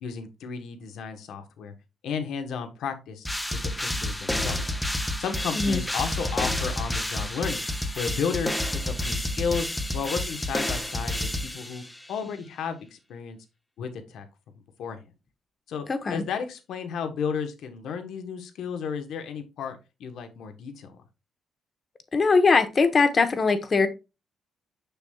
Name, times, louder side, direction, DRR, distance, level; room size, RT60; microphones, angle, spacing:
voice 1, 0.0-1.7 2.0-3.3 3.8-4.7 5.2-7.6 8.0-9.7 9.9-13.4 13.8-14.3 14.8-15.0 15.7-21.0, left 6 dB, 75° left, 1.1 m, -33 dB
sound 1, 3.2-12.1, left 1 dB, 10° left, 0.9 m, -29 dB
voice 2, 15.9-16.2 22.1-23.9, left 4 dB, 35° left, 1.0 m, -21 dB
6.8 x 6.1 x 2.3 m
cardioid pair, 90°, 0 cm